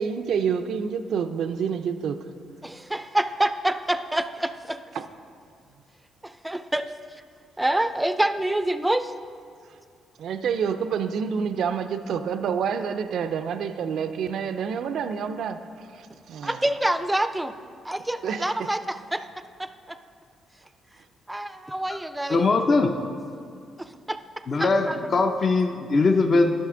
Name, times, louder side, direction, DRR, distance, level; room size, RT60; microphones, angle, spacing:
voice 1, 0.0-2.2 5.0-5.1 10.2-16.6 18.2-18.5, right 7 dB, 70° right, 9 dB, 0.4 m, -28 dB
voice 2, 2.6-4.8 6.2-6.9 7.6-9.1 16.4-17.5 17.8-19.2 19.6-20.0 21.3-22.5 23.8-24.2 24.6-25.0, right 1 dB, 10° right, 10 dB, 0.4 m, -27 dB
voice 3, 22.3-22.9 24.5-26.5, left 3 dB, 45° left, 6 dB, 0.6 m, -21 dB
12.0 x 6.1 x 3.8 m, 2.3 s
cardioid pair, 90°, 0 cm